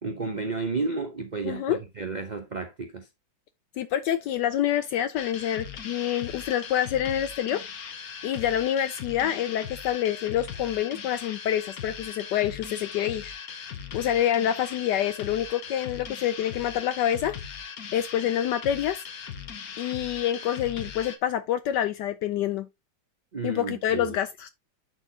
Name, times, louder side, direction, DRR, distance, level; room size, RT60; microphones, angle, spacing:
voice 1, 0.0-3.1 23.3-24.2, right 4 dB, 60° right, 0.4 m, -32 dB
voice 2, 1.4-1.8 3.8-7.9 8.2-13.3 13.9-17.4 17.9-19.0 19.8-22.7 23.4-24.5, left 11 dB, 75° left, 1.1 m, -27 dB
sound 1, 5.2-21.2, left 7 dB, 55° left, 1.4 m, -39 dB
10.5 x 4.4 x 2.7 m
omnidirectional pair, 2.1 m